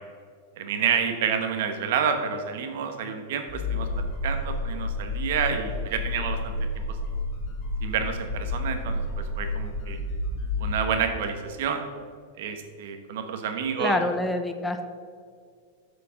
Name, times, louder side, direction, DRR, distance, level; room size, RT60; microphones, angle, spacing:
voice 1, 0.6-6.5 7.8-10.0 10.6-11.8 12.4-14.0, right 7 dB, 65° right, 6 dB, 1.2 m, -29 dB
sound 1, 3.5-10.8, left 2 dB, 35° left, 1.8 m, -30 dB
voice 2, 13.8-14.8, left 2 dB, 10° left, 7 dB, 0.5 m, -26 dB
8.3 x 5.1 x 5.8 m, 2.1 s
supercardioid pair, 140°, 0 cm